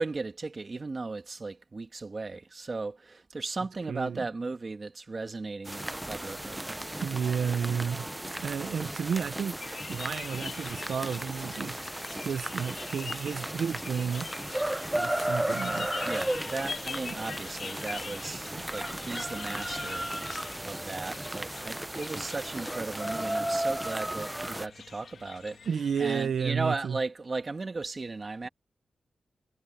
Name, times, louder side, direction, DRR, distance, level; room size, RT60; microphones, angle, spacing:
voice 1, 0.0-7.0 16.0-25.6 26.0-28.5, right 3 dB, 35° right, 1.9 m, -36 dB
voice 2, 3.9-4.2 7.0-8.1 8.4-9.6 9.9-11.8 12.2-14.4 14.9-16.0 25.7-27.0, right 7 dB, 85° right, 0.6 m, -31 dB
sound 1, 5.6-24.7, right 1 dB, 10° right, 0.6 m, -35 dB
sound 2, 9.6-26.2, left 6 dB, 75° left, 1.4 m, -44 dB
wide cardioid pair, 125°, 0 cm